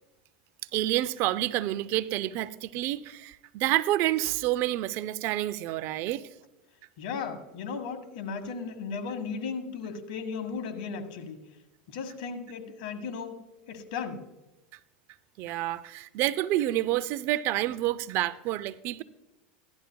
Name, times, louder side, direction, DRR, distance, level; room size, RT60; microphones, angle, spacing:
voice 1, 0.7-6.3 15.4-19.0, right 15 dB, 55° right, 0.5 m, -28 dB
voice 2, 7.0-11.4 11.9-13.4 13.7-14.2, left 5 dB, 70° left, 1.6 m, -36 dB
15.5 x 11.5 x 2.3 m
supercardioid pair, 115°, 5 cm